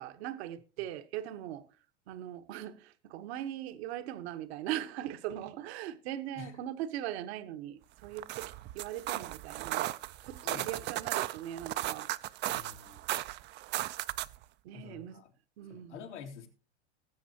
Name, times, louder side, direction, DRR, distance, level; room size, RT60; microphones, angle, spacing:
voice 1, 0.0-1.7 2.1-9.9 10.2-12.1 14.6-15.2 15.6-16.1, right 12 dB, 65° right, 1.1 m, -40 dB
sound 1, 8.0-14.4, right 15 dB, 30° right, 0.4 m, -36 dB
voice 2, 10.4-10.9 12.5-13.0 14.7-15.3 15.7-16.5, left 7 dB, 85° left, 2.7 m, -47 dB
19.5 x 7.6 x 2.8 m
hypercardioid pair, 105°, 34 cm